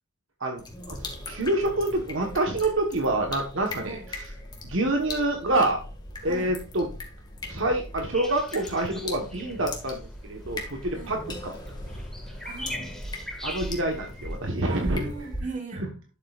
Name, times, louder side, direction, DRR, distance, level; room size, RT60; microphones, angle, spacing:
sound 1, 0.6-15.4, left 1 dB, 20° left, 1.9 m, -39 dB
voice 1, 0.9-4.3 4.6-5.8 6.2-6.9 7.5-11.6 13.4-15.1, right 2 dB, 65° right, 2 dB, 1.3 m, -27 dB
voice 2, 3.8-4.1 6.2-6.5 10.9-11.2 12.4-13.1 14.7-15.9, right 3 dB, 35° right, 3 dB, 2.4 m, -39 dB
sound 2, 8.1-14.4, left 1 dB, ahead, 1.3 m, -41 dB
12.0 x 7.5 x 2.5 m, 0.34 s
head